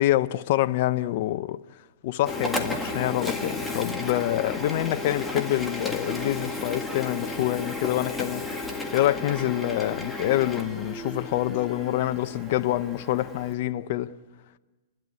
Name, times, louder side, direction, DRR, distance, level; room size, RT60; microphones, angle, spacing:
voice 1, 0.0-1.6 2.0-8.6 8.9-14.1, left 14 dB, 45° left, 0.7 m, -26 dB
Printer, 2.2-13.5, left 2 dB, 5° left, 1.8 m, -33 dB
30.0 x 12.0 x 9.6 m
hypercardioid pair, 150°, 0 cm